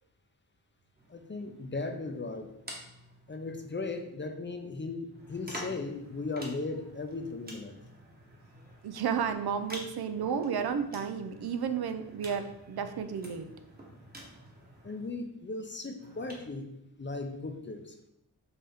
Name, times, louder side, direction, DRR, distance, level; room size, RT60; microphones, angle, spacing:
sound 1, 1.0-4.2 5.1-15.1 16.0-16.5, right 1 dB, 25° right, 1.2 m, -49 dB
voice 1, 1.1-2.5 3.3-7.8 14.8-16.7 17.0-17.9, left 3 dB, 30° left, 6 dB, 0.5 m, -37 dB
voice 2, 8.8-13.5, right 7 dB, 80° right, 9 dB, 0.5 m, -32 dB
5.5 x 2.7 x 3.5 m, 0.83 s
wide cardioid pair, 70°, 38 cm